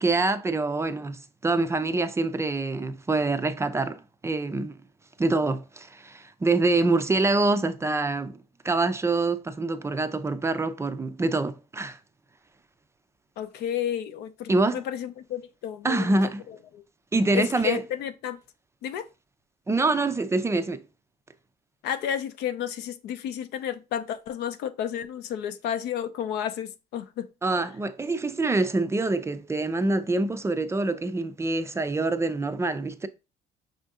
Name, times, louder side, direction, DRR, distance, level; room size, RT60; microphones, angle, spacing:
voice 1, 0.0-4.8 5.2-8.4 8.6-12.0 14.5-14.8 15.8-16.4 17.1-17.8 19.7-20.8 27.4-33.1, right 3 dB, 15° right, 0.3 m, -25 dB
voice 2, 13.4-16.2 16.5-16.8 17.3-18.4 18.8-19.1 21.8-27.3, left 9 dB, 80° left, 0.5 m, -31 dB
5.5 x 2.6 x 3.5 m
cardioid pair, 110°, 17 cm